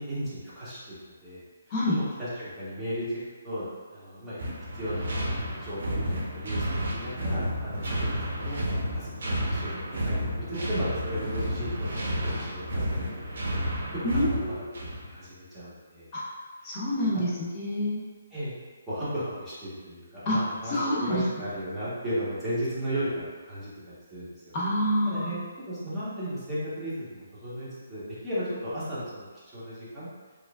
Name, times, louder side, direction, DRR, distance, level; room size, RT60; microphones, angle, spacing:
voice 1, 0.0-1.4 1.9-3.1 3.4-4.4 4.7-8.6 8.9-9.1 9.4-13.4 13.7-14.3 15.1-16.1 18.3-18.5 18.9-23.7 24.1-24.5 25.0-30.1, equal, 5° right, -13 dB, 1.2 m, -35 dB
sound 1, 4.4-15.1, equal, 65° right, 0.8 m, -31 dB
voice 2, 14.0-14.7 16.1-16.2 16.6-18.0 20.3-20.4 20.7-21.2 24.5-25.3, left 1 dB, 30° left, -6 dB, 0.9 m, -27 dB
4.6 x 2.6 x 2.4 m, 1.4 s
hypercardioid pair, 165°, 0 cm